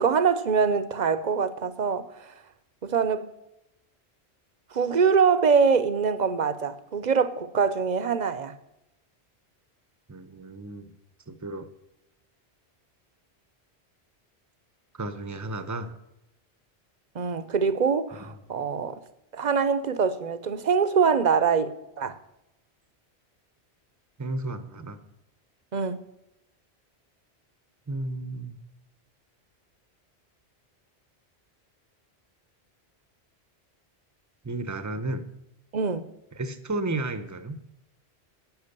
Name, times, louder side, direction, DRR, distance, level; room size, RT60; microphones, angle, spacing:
voice 1, 0.0-2.3 2.8-3.3 4.7-8.5 17.1-19.0 19.3-22.2 25.7-26.0 35.7-36.1, right 6 dB, 45° right, 13 dB, 0.8 m, -24 dB
voice 2, 10.1-10.9 11.3-11.7 14.9-15.9 18.1-18.3 24.2-25.0 27.9-28.6 34.4-35.3 36.4-37.6, right 2 dB, 20° right, 11 dB, 0.8 m, -33 dB
10.5 x 9.2 x 6.7 m, 0.88 s
omnidirectional pair, 1.1 m